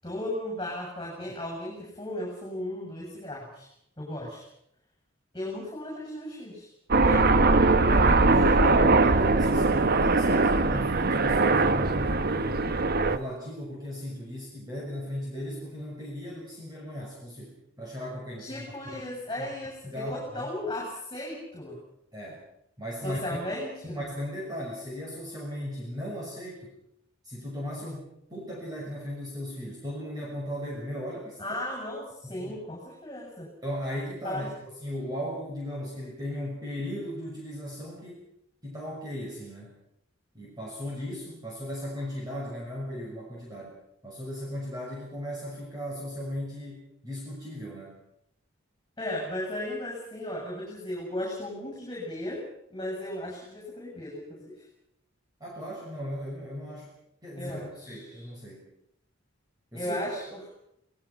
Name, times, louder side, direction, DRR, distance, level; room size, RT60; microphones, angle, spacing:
voice 1, 0.0-3.7 4.0-4.4 5.3-6.7 7.0-7.3 8.2-8.8 18.4-21.8 23.0-24.0 31.4-33.5 34.2-34.5 49.0-52.4 52.7-54.6 57.4-58.3 59.7-60.4, left 1 dB, 20° left, -1 dB, 7.4 m, -36 dB
Aircraft, 6.9-13.2, right 3 dB, 50° right, 1.1 m, -21 dB
voice 2, 7.9-12.7 13.0-18.6 18.9-19.0 19.4-19.5 19.8-20.5 22.1-22.4 22.8-23.2 23.8-26.7 27.2-31.4 32.2-32.6 33.6-38.2 38.6-39.8 40.3-48.0 55.4-57.0 57.2-58.6 59.7-60.0 60.3-60.4, equal, 20° right, -3 dB, 6.2 m, -37 dB
29.5 x 19.5 x 5.9 m, 0.77 s
head